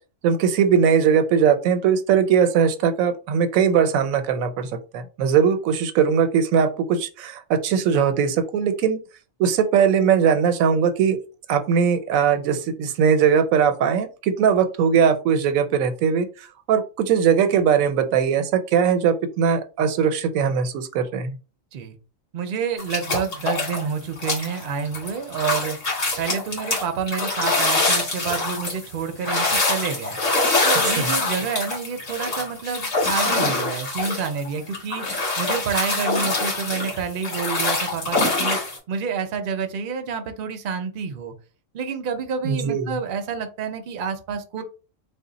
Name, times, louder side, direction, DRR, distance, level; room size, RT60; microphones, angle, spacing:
voice 1, 0.2-4.7 4.9-9.0 9.4-11.2 11.5-16.3 16.7-21.4 30.8-31.1 42.4-42.9, right 7 dB, 85° right, 9 dB, 1.0 m, -20 dB
voice 2, 22.3-25.8 26.2-30.2 30.6-38.6 38.9-41.3 41.7-44.6, right 6 dB, 55° right, 6 dB, 0.6 m, -28 dB
sound 1, 22.8-23.9 24.2-38.8, left 2 dB, 70° left, 2.0 m, -24 dB
3.4 x 2.1 x 3.9 m, 0.33 s
omnidirectional pair, 1.4 m